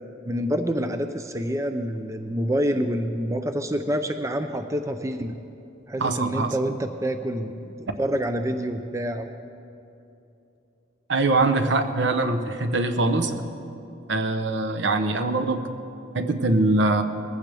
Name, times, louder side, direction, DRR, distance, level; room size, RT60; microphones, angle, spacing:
voice 1, 0.2-5.3 5.9-9.3, equal, 15° right, 7 dB, 0.5 m, -27 dB
voice 2, 6.0-6.5 11.1-13.5 14.1-15.6 16.1-17.0, right 2 dB, 65° right, 8 dB, 0.9 m, -23 dB
21.0 x 15.0 x 3.4 m, 2.8 s
head